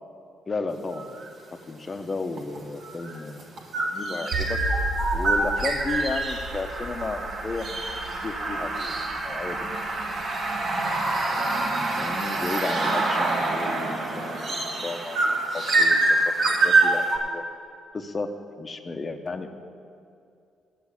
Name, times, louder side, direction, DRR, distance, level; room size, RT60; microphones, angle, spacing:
voice 1, 0.5-1.1 1.7-3.5 3.9-4.6 5.1-9.7 11.3-16.0 16.6-17.4 17.9-18.3 18.6-19.5, left 3 dB, 30° left, 8 dB, 0.8 m, -33 dB
sound 1, 0.9-1.3 2.4-17.2, right 2 dB, 60° right, 1.7 m, -26 dB
sound 2, 4.3-11.5, right 1 dB, 80° right, 0.9 m, -35 dB
8.2 x 7.6 x 8.4 m, 2.5 s
cardioid pair, 90°, 0 cm